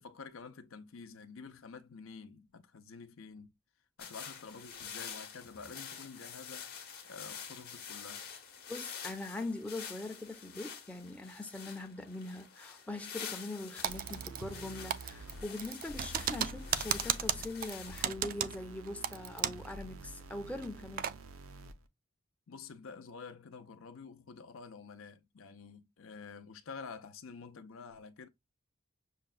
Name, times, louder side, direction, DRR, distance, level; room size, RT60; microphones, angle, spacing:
voice 1, 0.0-3.5 4.0-6.8 7.0-8.3 22.5-28.3, left 5 dB, 75° left, 0.6 m, -49 dB
sound 1, 4.0-18.0, left 7 dB, 50° left, 0.9 m, -47 dB
voice 2, 8.7-21.1, left 2 dB, 5° left, 0.5 m, -42 dB
Typing, 13.8-14.6 14.9-19.7 20.0-20.1 20.6-21.2, right 10 dB, 45° right, 0.3 m, -35 dB
sound 2, 13.9-21.9, right 1 dB, 90° right, 0.6 m, -49 dB
6.4 x 2.2 x 2.3 m
head